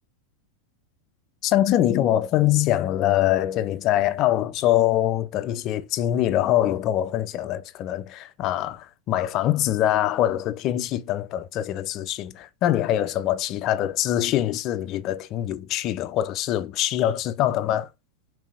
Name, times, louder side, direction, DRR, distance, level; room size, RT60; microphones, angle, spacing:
voice 1, 1.4-17.9, left 12 dB, 35° left, 0.4 m, -23 dB
5.5 x 2.6 x 3.4 m
figure-of-eight pair, 90°, 0 cm